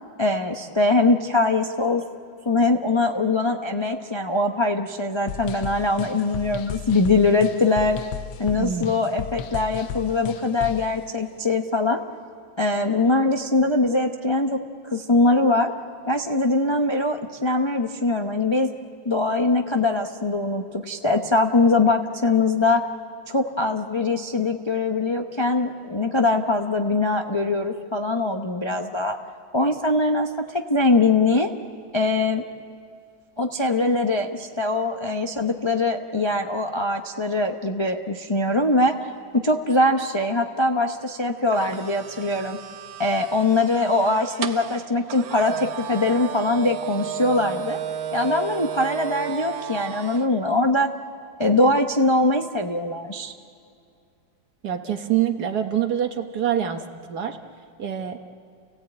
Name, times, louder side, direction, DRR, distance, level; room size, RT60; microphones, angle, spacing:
voice 1, 0.2-2.0 2.5-8.0 8.4-12.0 12.6-14.6 14.9-15.7 16.1-18.7 19.0-22.8 23.3-29.2 29.5-31.5 31.9-32.4 33.4-39.0 39.3-42.6 43.0-47.8 48.1-50.9 51.4-53.3, left 2 dB, 35° left, 3 dB, 0.4 m, -22 dB
sound 1, 5.3-10.9, left 8 dB, 80° left, 1.5 m, -34 dB
voice 2, 8.6-8.9 54.6-56.8 57.1-57.4 57.8-58.2, right 10 dB, 55° right, 6 dB, 1.6 m, -25 dB
sound 2, 41.5-50.3, right 9 dB, 80° right, 1.6 m, -33 dB
30.0 x 16.5 x 8.8 m, 2.4 s
omnidirectional pair, 2.1 m